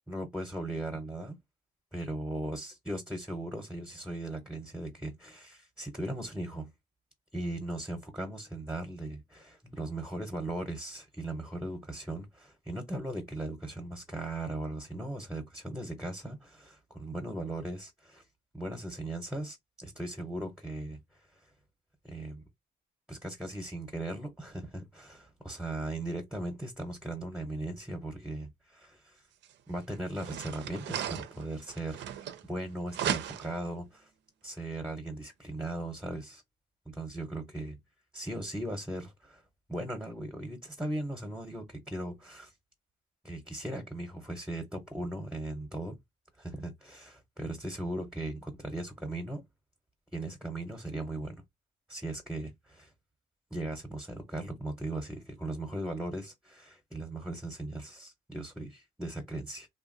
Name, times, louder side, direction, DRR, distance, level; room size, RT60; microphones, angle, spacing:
voice 1, 0.1-1.4 1.9-6.7 7.3-18.2 18.5-21.5 22.0-22.4 23.1-29.2 29.7-34.1 34.4-36.4 36.9-37.8 38.1-39.4 39.7-42.5 43.2-46.0 46.4-49.4 50.1-51.4 51.9-52.9 53.5-59.7, right 1 dB, 5° right, 0.7 m, -38 dB
sound 1, 29.4-29.5 30.1-32.6 32.9-33.7, right 10 dB, 80° right, 0.4 m, -36 dB
2.8 x 2.2 x 2.5 m
cardioid pair, 75°, 18 cm